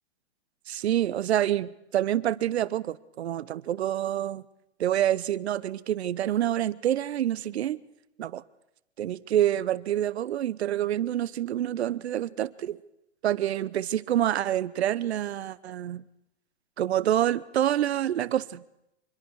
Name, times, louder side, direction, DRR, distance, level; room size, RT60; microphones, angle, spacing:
voice 1, 0.7-4.4 4.8-7.8 8.2-8.4 9.0-12.8 13.2-16.0 16.8-18.6, right 11 dB, 70° right, 0.9 m, -27 dB
25.5 x 22.5 x 4.8 m
hypercardioid pair, 135°, 33 cm